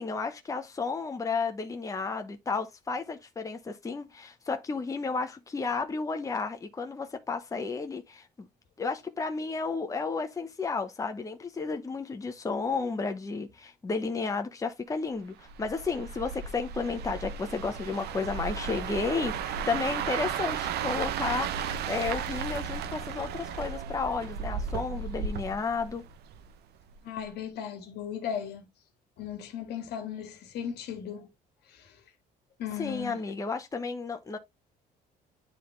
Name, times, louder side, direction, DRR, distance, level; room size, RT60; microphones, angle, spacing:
voice 1, 0.0-8.5 8.8-21.5 21.9-26.0 32.8-34.4, left 4 dB, 20° left, 1.0 m, -32 dB
sound 1, 15.5-26.6 26.9-27.2, right 7 dB, 75° right, 0.9 m, -34 dB
voice 2, 27.0-28.7 29.2-31.3 31.7-31.9 32.6-33.2, left 8 dB, 75° left, 1.9 m, -36 dB
10.0 x 3.7 x 3.1 m
cardioid pair, 110°, 17 cm